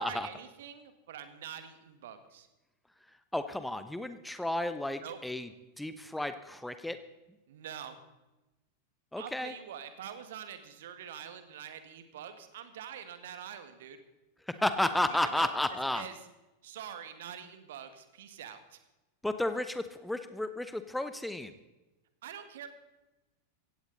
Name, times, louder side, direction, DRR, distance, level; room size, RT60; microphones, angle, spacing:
voice 1, 0.0-2.5 5.0-5.2 7.5-8.0 9.2-14.0 15.1-15.5 15.9-16.2 16.6-18.8 22.2-22.7, right 9 dB, 55° right, 10 dB, 1.7 m, -45 dB
voice 2, 3.3-5.5 5.8-7.0 9.1-9.5 14.5-16.0 19.2-21.5, left 1 dB, 5° left, 11 dB, 0.8 m, -32 dB
16.5 x 16.0 x 4.0 m, 1.0 s
figure-of-eight pair, 90°, 0 cm